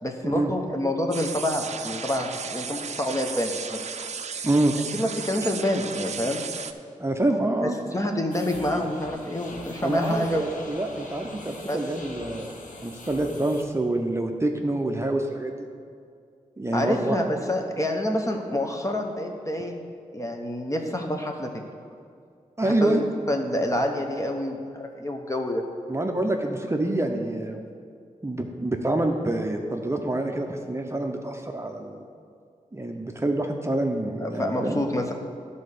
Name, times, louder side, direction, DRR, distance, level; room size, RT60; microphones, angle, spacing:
voice 1, 0.0-3.8 4.9-6.4 7.6-10.4 11.7-11.8 16.7-19.8 20.1-21.5 22.6-25.6 34.2-35.1, left 1 dB, 25° left, 3 dB, 1.1 m, -27 dB
sound 1, 1.1-6.7, right 6 dB, 60° right, 0.5 m, -35 dB
voice 2, 4.4-4.7 7.0-7.8 9.8-12.5 12.8-15.5 16.6-17.3 22.6-23.0 25.9-27.6 28.2-32.0 32.7-34.8, right 1 dB, 20° right, 2 dB, 0.7 m, -26 dB
sound 2, 8.3-13.6, left 2 dB, 80° left, 1.1 m, -42 dB
11.0 x 4.2 x 6.7 m, 2.3 s
cardioid pair, 65°, 13 cm